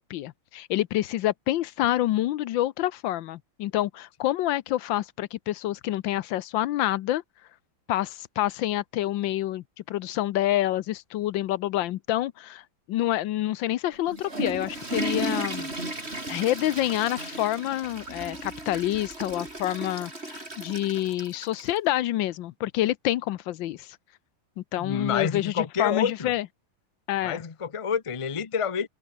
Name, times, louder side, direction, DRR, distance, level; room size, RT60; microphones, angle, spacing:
voice 1, 0.0-7.2 7.9-15.7 16.3-24.0 24.6-26.5 27.1-27.4, left 14 dB, 75° left, 1.4 m, -27 dB
Water / Toilet flush, 13.9-21.8, right 2 dB, 30° right, 6.1 m, -35 dB
voice 2, 24.8-26.3 27.2-28.9, left 6 dB, 55° left, 0.3 m, -28 dB
omnidirectional pair, 2.2 m